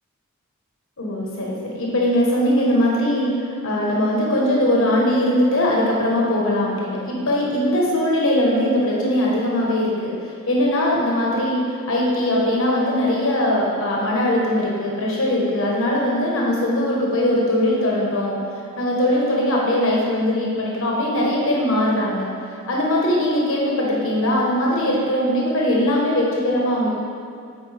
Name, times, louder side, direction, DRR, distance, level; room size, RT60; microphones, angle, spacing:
voice 1, 1.0-10.1 10.5-18.4 18.8-26.9, left 1 dB, 65° left, -3 dB, 1.3 m, -20 dB
8.5 x 4.9 x 3.5 m, 2.3 s
head